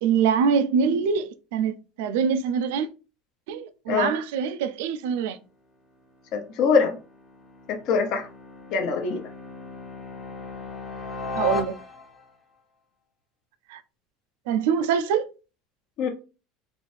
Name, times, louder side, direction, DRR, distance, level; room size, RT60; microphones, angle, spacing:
voice 1, 0.0-2.9 3.5-5.4 11.3-11.7 13.7-13.8 14.5-15.3, right 7 dB, 75° right, 0.4 m, -24 dB
sound 1, 5.9-12.3, left 4 dB, 10° left, 0.8 m, -36 dB
voice 2, 6.3-7.0 7.7-8.3 8.7-9.2 16.0-16.1, left 5 dB, 45° left, 0.8 m, -23 dB
4.0 x 2.6 x 3.3 m
cardioid pair, 170°, 0 cm